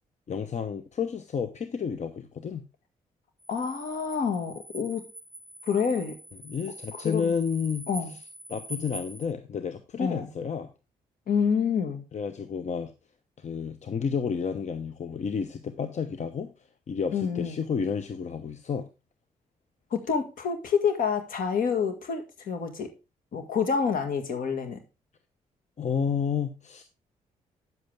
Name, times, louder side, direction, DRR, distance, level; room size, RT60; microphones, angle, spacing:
voice 1, 0.3-2.6 6.4-7.9 8.5-10.7 12.1-12.9 13.4-16.5 16.9-18.9 25.8-26.8, left 6 dB, 50° left, 0.9 m, -31 dB
sound 1, 3.4-9.2, right 1 dB, 25° left, 6.2 m, -44 dB
voice 2, 3.5-5.1 5.6-6.2 6.9-7.3 7.9-8.1 10.0-10.3 11.3-12.0 17.1-17.6 19.9-22.9 23.3-24.8, left 6 dB, 70° left, 1.9 m, -28 dB
9.3 x 7.7 x 3.5 m
supercardioid pair, 50°, 15 cm